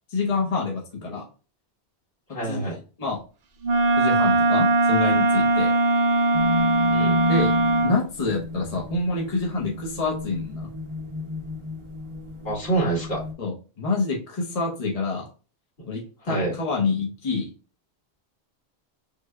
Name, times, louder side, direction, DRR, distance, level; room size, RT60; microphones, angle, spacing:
voice 1, 0.1-1.2 2.5-3.2 4.0-5.7 7.3-7.5 7.8-10.7 13.4-15.3 15.9-17.5, left 3 dB, 40° left, -1 dB, 0.8 m, -27 dB
voice 2, 2.3-2.8 6.9-7.2 12.4-13.2 15.8-15.9 16.3-16.5, right 2 dB, 65° left, -5 dB, 2.1 m, -26 dB
Wind instrument woodwind instrument, 3.6-8.0, right 2 dB, 70° right, 0.8 m, -20 dB
sound 1, 6.3-13.3, left 4 dB, 35° right, 0.6 m, -32 dB
3.5 x 2.1 x 3.3 m, 0.35 s
omnidirectional pair, 1.1 m